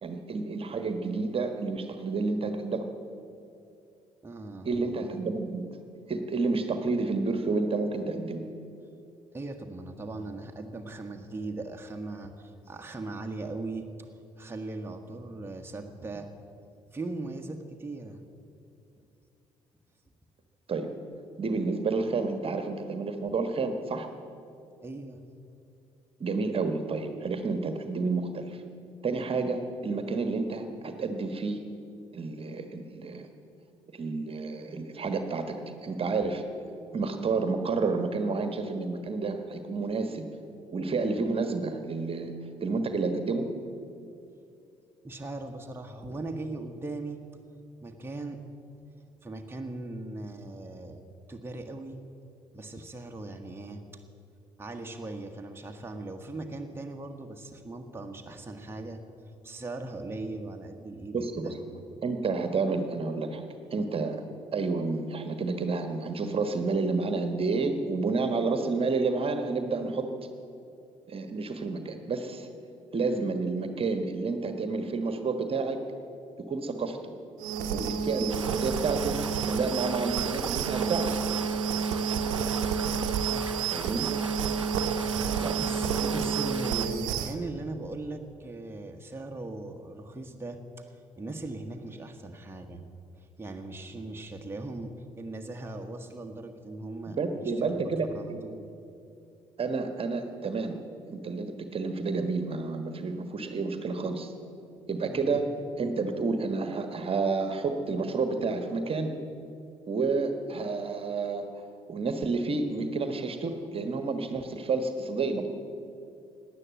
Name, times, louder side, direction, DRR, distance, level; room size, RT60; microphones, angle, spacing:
voice 1, 0.0-2.9 4.6-5.7 6.1-8.4 20.7-20.9 21.4-24.1 26.2-28.6 29.0-31.6 32.1-33.3 33.9-36.4 36.9-40.3 40.7-42.3 42.6-43.5 61.1-61.5 62.0-64.2 64.5-70.1 71.1-72.5 72.9-75.8 76.5-77.0 77.7-81.2 83.7-84.1 85.4-85.7 86.1-86.2 86.9-87.0 97.1-98.4 99.6-100.8 101.1-104.3 104.9-105.5 105.8-109.1 109.9-111.6 111.9-115.5, right 4 dB, 35° right, 7 dB, 1.4 m, -30 dB
voice 2, 4.2-4.7 9.3-14.1 14.4-16.3 16.9-18.2 24.8-25.2 45.0-47.2 47.8-48.4 49.2-51.0 51.3-52.0 52.5-54.0 54.6-59.0 59.4-61.5 83.3-83.6 85.6-92.8 93.2-98.7 105.1-105.4, right 2 dB, 15° right, 3 dB, 1.4 m, -39 dB
sound 1, 77.4-87.4, right 6 dB, 65° right, 0.9 m, -30 dB
sound 2, 78.3-86.9, right 4 dB, 90° right, 0.4 m, -38 dB
18.0 x 10.5 x 7.6 m, 2.6 s
figure-of-eight pair, 45°, 15 cm